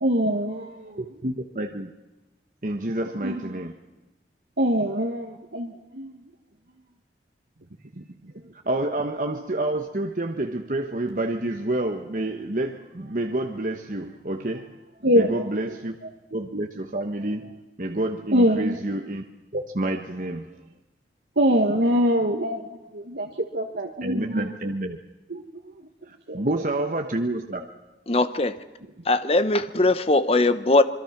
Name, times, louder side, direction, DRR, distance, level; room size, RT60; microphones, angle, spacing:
voice 1, 0.0-1.0 3.2-3.4 4.6-6.2 15.0-15.5 18.3-18.8 21.4-22.6 22.9-24.5 25.3-25.4 26.3-26.4, equal, 75° right, 1.6 m, -23 dB
voice 2, 1.0-1.9 2.6-3.8 8.6-14.7 15.1-16.0 16.3-19.2 19.5-20.5 24.0-25.0 26.1-27.6, right 1 dB, 50° right, 1.2 m, -28 dB
voice 3, 28.1-28.6 29.1-30.8, left 2 dB, 35° left, 1.0 m, -20 dB
26.5 x 22.5 x 6.0 m
head